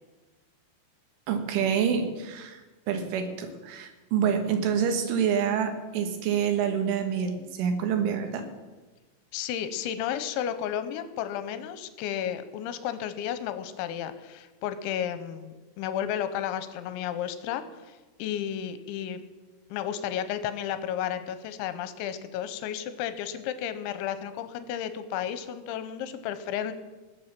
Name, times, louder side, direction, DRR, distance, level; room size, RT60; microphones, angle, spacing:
voice 1, 1.3-8.4, right 7 dB, 75° right, 6 dB, 3.9 m, -27 dB
voice 2, 9.3-19.2 19.7-26.7, left 9 dB, 85° left, 11 dB, 2.9 m, -33 dB
19.0 x 7.6 x 7.4 m, 1.2 s
omnidirectional pair, 5.7 m